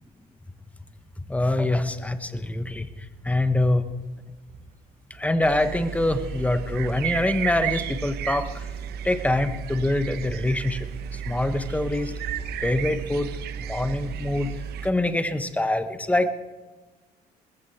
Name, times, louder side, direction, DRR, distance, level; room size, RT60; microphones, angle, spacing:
voice 1, 1.3-2.9 3.2-3.8 5.1-8.7 9.0-12.1 12.6-13.3 13.7-14.5 14.8-16.3, left 1 dB, 10° left, 10 dB, 1.1 m, -24 dB
sound 1, 2.3-12.6, right 5 dB, 55° right, 4.1 m, -50 dB
sound 2, 5.4-14.9, right 8 dB, 70° right, 1.0 m, -33 dB
20.5 x 14.5 x 4.3 m, 1.3 s
cardioid pair, 110°, 17 cm